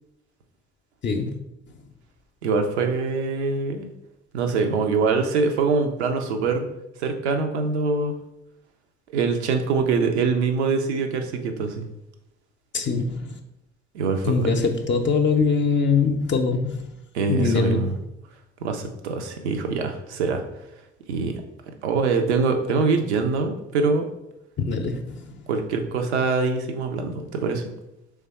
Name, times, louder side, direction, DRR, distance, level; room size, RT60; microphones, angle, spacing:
voice 1, 2.4-3.9 4.3-6.6 7.0-8.1 9.1-11.9 13.9-14.7 17.1-17.9 18.6-20.4 21.1-21.3 21.8-24.0 25.5-27.6, right 4 dB, 80° right, 5 dB, 0.6 m, -24 dB
voice 2, 12.7-13.2 14.2-16.8 17.3-17.9 24.6-25.2, left 4 dB, 35° left, 4 dB, 0.6 m, -22 dB
3.5 x 3.3 x 4.2 m, 0.89 s
figure-of-eight pair, 45°, 33 cm